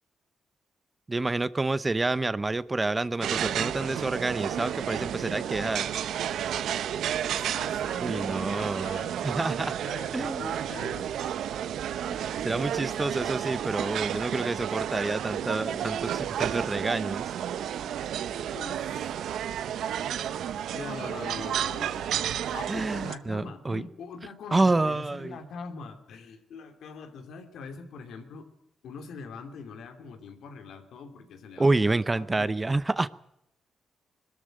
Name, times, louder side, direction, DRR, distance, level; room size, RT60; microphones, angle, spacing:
voice 1, 1.1-5.9 8.0-9.7 10.1-10.4 12.0-17.3 22.7-23.8 24.5-25.4 31.6-33.1, right 2 dB, 20° right, 17 dB, 0.7 m, -28 dB
sound 1, 3.2-23.2, right 10 dB, 80° right, 0.9 m, -31 dB
voice 2, 7.4-9.2 9.8-11.1 18.5-19.2 20.7-28.5 28.8-32.6, left 5 dB, 80° left, 6 dB, 3.0 m, -43 dB
21.5 x 13.0 x 9.2 m, 0.83 s
cardioid pair, 90°, 0 cm